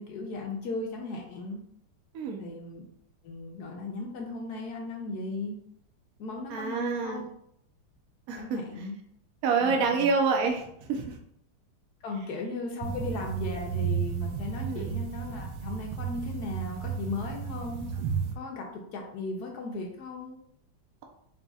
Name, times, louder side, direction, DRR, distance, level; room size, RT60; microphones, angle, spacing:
voice 1, 0.0-1.6 2.4-2.8 3.2-5.6 6.2-7.2 8.4-9.0 9.6-10.1 12.0-17.8 18.4-20.4, left 3 dB, 70° left, 1 dB, 1.0 m, -36 dB
voice 2, 6.5-7.3 8.3-8.6 9.4-11.2 14.6-14.9, right 4 dB, 70° right, 2 dB, 0.8 m, -27 dB
sound 1, 12.8-18.3, right 7 dB, 90° right, 1.5 m, -33 dB
4.0 x 3.9 x 2.4 m, 0.71 s
omnidirectional pair, 2.3 m